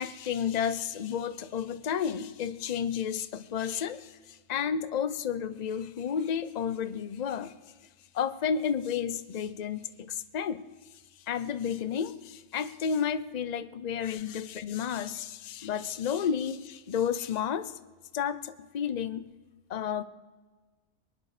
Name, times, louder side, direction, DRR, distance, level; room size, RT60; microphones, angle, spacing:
voice 1, 0.0-7.5 8.1-10.6 11.3-17.7 18.1-19.3 19.7-20.0, left 7 dB, 50° left, 14 dB, 0.5 m, -31 dB
23.0 x 10.5 x 4.9 m, 1.3 s
omnidirectional pair, 1.5 m